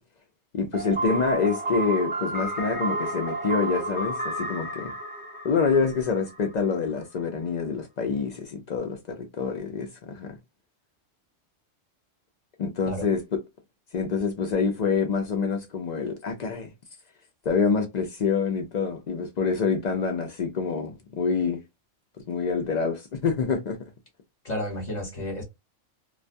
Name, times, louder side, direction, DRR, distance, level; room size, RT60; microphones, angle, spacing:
voice 1, 0.5-4.9 5.4-10.4 12.6-13.4 13.9-16.7 17.5-21.6 22.3-23.8, left 5 dB, 70° left, 0.4 m, -26 dB
sound 1, 0.7-6.6, right 2 dB, 10° right, 0.4 m, -31 dB
voice 2, 24.4-25.4, left 1 dB, 35° left, 1.0 m, -31 dB
2.3 x 2.2 x 2.5 m
omnidirectional pair, 1.3 m